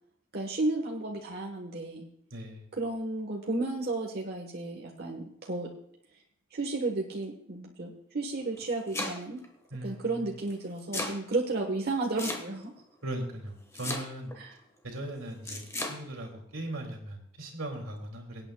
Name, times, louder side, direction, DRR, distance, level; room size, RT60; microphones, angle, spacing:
voice 1, 0.3-2.1 2.8-5.7 6.5-9.4 9.8-12.7 14.4-14.5, right 2 dB, 50° right, -1 dB, 1.3 m, -33 dB
voice 2, 2.3-2.7 9.7-10.3 13.0-14.3 14.8-18.5, right 1 dB, 80° right, 1 dB, 2.5 m, -39 dB
Domestic sounds home sounds, 8.4-9.4 10.5-11.2 12.2-12.8 13.7-14.4 15.4-16.0, left 2 dB, 15° left, 1.3 m, -35 dB
24.0 x 8.9 x 2.3 m, 0.71 s
head